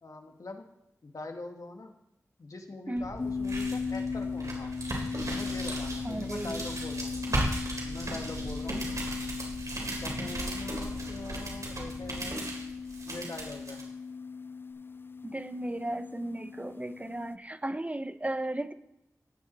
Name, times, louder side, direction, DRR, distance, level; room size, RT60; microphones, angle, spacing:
voice 1, 0.0-0.7 1.0-1.9 2.4-4.7 5.3-7.2 7.8-8.8 10.0-12.5 13.1-13.8, left 2 dB, 70° left, 4 dB, 1.6 m, -43 dB
sound 1, 3.0-13.8, right 1 dB, 70° right, 3.7 m, -36 dB
sound 2, 3.2-17.4, left 5 dB, 40° left, 0.3 m, -38 dB
voice 2, 6.0-6.6 7.3-7.5 15.2-18.7, right 1 dB, 25° right, 11 dB, 0.7 m, -35 dB
15.0 x 9.0 x 4.0 m, 0.87 s
wide cardioid pair, 65°, 6 cm